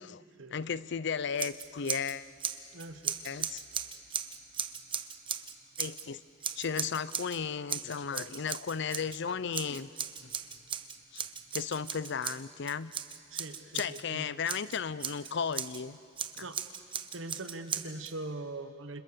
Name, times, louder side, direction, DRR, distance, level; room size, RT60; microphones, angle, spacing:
voice 1, 0.5-2.3 3.2-3.6 5.8-6.2 6.6-9.9 10.2-10.3 11.1-11.3 11.5-12.9 13.7-16.0 16.3-16.4, left 6 dB, 65° left, 17 dB, 0.6 m, -35 dB
Scissors, 1.3-2.1 2.4-6.0 6.4-7.4 7.7-9.2 9.5-14.0 14.5-15.8 16.2-18.1, right 7 dB, 25° right, 1.0 m, -37 dB
voice 2, 2.7-3.2 13.3-14.5 16.4-16.6 17.1-19.0, right 2 dB, 85° right, 10 dB, 1.3 m, -42 dB
29.0 x 26.5 x 6.9 m, 2.5 s
head